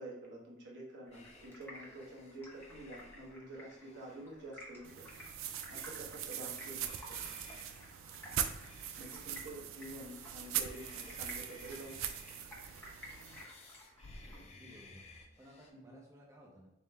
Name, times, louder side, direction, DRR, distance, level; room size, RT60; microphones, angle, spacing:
voice 1, 0.0-5.0 5.7-7.4 9.0-12.0 15.7-16.0, right 1 dB, 60° right, -2 dB, 1.0 m, -49 dB
sound 1, 1.1-15.7, left 2 dB, 35° left, 0.5 m, -58 dB
Stream, 1.1-14.5, left 1 dB, 10° left, 0.9 m, -54 dB
sound 2, 4.8-13.5, right 9 dB, 80° right, 0.4 m, -41 dB
voice 2, 14.4-15.0 15.4-16.7, equal, 15° right, -3 dB, 0.7 m, -58 dB
3.6 x 2.4 x 4.1 m, 0.93 s
head